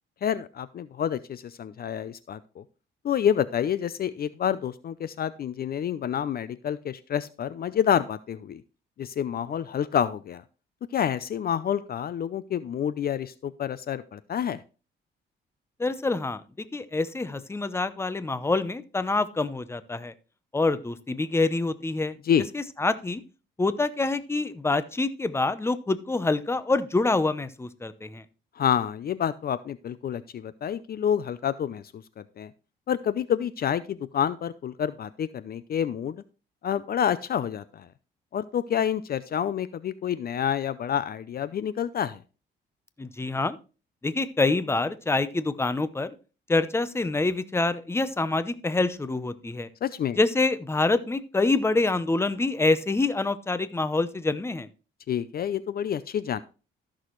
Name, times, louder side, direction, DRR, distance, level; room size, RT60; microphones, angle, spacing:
voice 1, 0.2-2.6 3.0-8.6 9.0-10.4 10.9-14.6 22.2-22.5 28.6-32.5 32.9-36.2 36.6-37.9 38.3-42.2 49.8-50.2 55.1-56.4, left 9 dB, 50° left, 15 dB, 0.5 m, -28 dB
voice 2, 15.8-16.4 16.7-20.1 20.5-22.2 22.5-23.2 23.6-28.2 43.0-43.6 44.0-46.1 46.5-49.7 50.2-54.7, left 3 dB, 10° left, 14 dB, 0.7 m, -26 dB
14.0 x 6.3 x 3.1 m, 0.33 s
cardioid pair, 90°, 20 cm